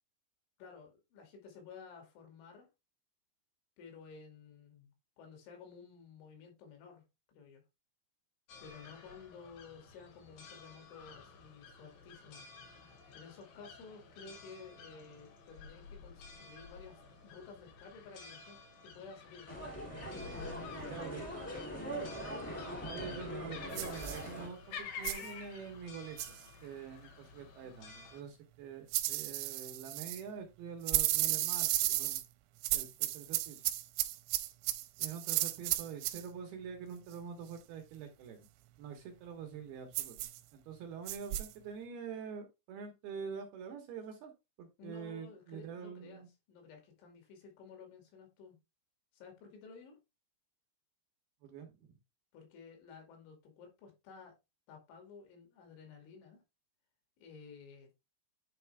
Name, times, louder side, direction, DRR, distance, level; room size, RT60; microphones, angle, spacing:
voice 1, 0.6-2.7 3.8-7.6 8.6-12.5 13.1-19.8 20.3-21.9 44.8-48.6 49.1-50.0 52.3-54.4 54.7-56.4 57.2-57.9, left 5 dB, 75° left, 4.7 m, -54 dB
sound 1, 8.5-28.2, left 5 dB, 60° left, 2.7 m, -51 dB
sound 2, 19.5-24.5, equal, 10° left, 0.6 m, -42 dB
voice 2, 20.9-21.2 22.6-26.4 26.6-32.2 32.7-33.6 35.0-38.5 38.8-44.3 44.6-46.3 51.4-52.0, right 6 dB, 70° right, 2.6 m, -46 dB
sound 3, 23.7-24.2 25.0-25.3 26.2-26.4 28.9-30.2 30.9-32.2 32.6-36.2 39.9-40.4 41.1-41.5, right 16 dB, 85° right, 3.0 m, -33 dB
10.0 x 4.6 x 3.4 m
omnidirectional pair, 5.5 m